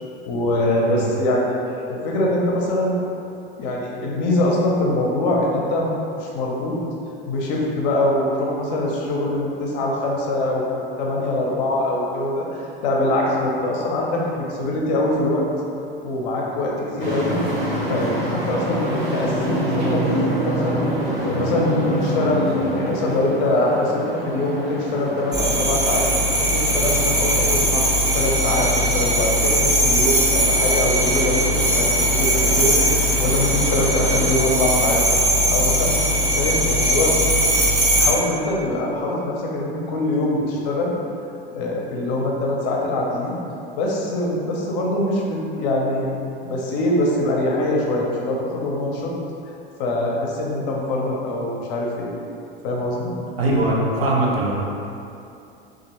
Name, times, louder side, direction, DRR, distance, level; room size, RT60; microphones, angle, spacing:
voice 1, 0.3-1.5 1.9-3.0 3.6-5.9 6.2-6.8 7.3-15.4 16.0-17.4 17.9-20.9 21.2-26.1 26.5-27.9 28.1-35.0 35.5-36.0 36.4-37.2 37.9-40.9 41.5-43.4 43.8-46.1 46.4-49.1 49.8-52.1 52.6-53.1, left 1 dB, 45° left, -2 dB, 0.6 m, -23 dB
sound 1, 17.0-34.3, right 1 dB, 50° right, 0.9 m, -28 dB
sound 2, 25.3-38.1, equal, 15° right, 0.4 m, -19 dB
voice 2, 53.4-54.5, right 1 dB, 75° right, -4 dB, 0.6 m, -20 dB
2.9 x 2.4 x 2.9 m, 2.7 s
figure-of-eight pair, 80°, 30 cm